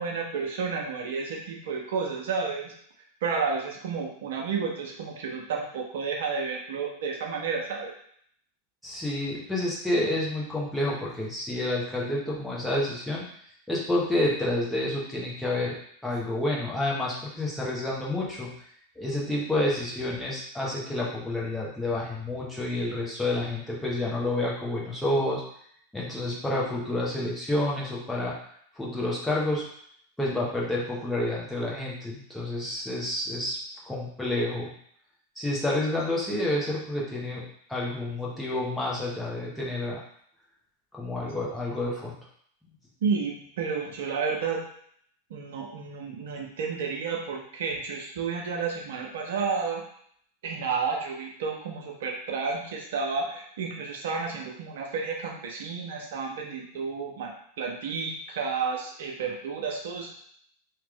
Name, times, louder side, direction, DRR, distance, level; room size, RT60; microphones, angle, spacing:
voice 1, 0.0-2.7 3.2-7.9 43.0-44.6 45.3-49.8 50.4-57.3 57.6-60.1, right 5 dB, 70° right, 0 dB, 0.7 m, -31 dB
voice 2, 8.8-13.2 13.7-15.8 16.0-18.5 19.0-25.4 25.9-28.4 28.8-29.7 30.2-33.6 33.8-34.7 35.4-37.4 37.7-40.0 40.9-42.2, left 1 dB, 5° left, -5 dB, 1.1 m, -29 dB
2.9 x 2.4 x 3.7 m, 0.65 s
hypercardioid pair, 95°, 0 cm